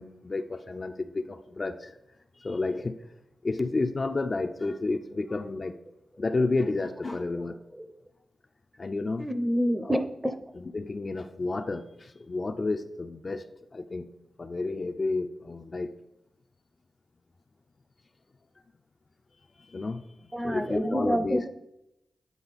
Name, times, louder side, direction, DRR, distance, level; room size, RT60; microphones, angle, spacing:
voice 1, 0.0-1.9 2.4-3.0 3.4-5.8 6.2-7.6 8.8-9.3 9.8-10.0 10.6-14.1 14.4-15.9 19.6-21.4, left 3 dB, 45° left, 7 dB, 0.5 m, -31 dB
voice 2, 9.2-10.4 20.3-21.5, equal, 10° right, 9 dB, 0.6 m, -28 dB
9.5 x 3.8 x 4.1 m, 0.87 s
cardioid pair, 65°, 0 cm